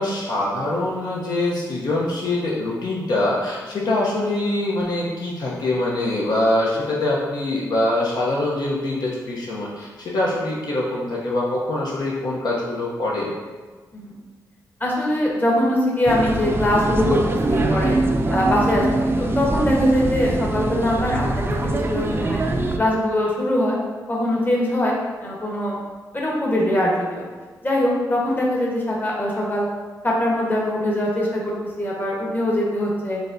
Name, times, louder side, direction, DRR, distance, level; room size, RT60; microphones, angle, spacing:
voice 1, 0.0-13.3, left 1 dB, 65° left, -4 dB, 0.7 m, -24 dB
voice 2, 14.8-17.2 17.5-18.0 18.3-21.3 21.6-22.4 22.8-23.8 24.1-25.8 26.1-27.2 27.6-29.7 30.0-33.2, left 1 dB, 25° left, -4 dB, 1.1 m, -22 dB
sound 1, 16.1-22.8, right 2 dB, 30° right, 0.4 m, -22 dB
4.9 x 3.3 x 2.6 m, 1.4 s
cardioid pair, 80°, 7 cm